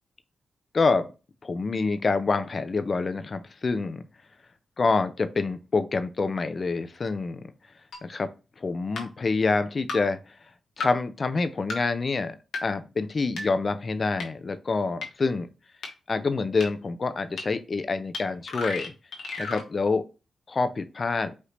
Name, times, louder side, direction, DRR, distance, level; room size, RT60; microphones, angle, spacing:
voice 1, 0.7-1.0 1.4-4.0 4.8-7.4 8.0-8.3 8.6-10.2 10.8-12.3 12.6-15.5 16.1-18.9 19.4-20.0 20.5-21.3, left 4 dB, 45° left, 10 dB, 0.5 m, -26 dB
sound 1, 7.9-8.0 9.0-9.1 9.9-10.0 10.8-10.9 11.7-11.8 12.5-12.6 13.4-13.5 14.2-14.3 15.0-15.1 15.8-15.9 16.6-16.7 17.4-17.5 18.1-18.2 18.5-19.7, left 3 dB, 80° left, 1.2 m, -32 dB
4.9 x 2.7 x 3.3 m, 0.31 s
cardioid pair, 70°, 0 cm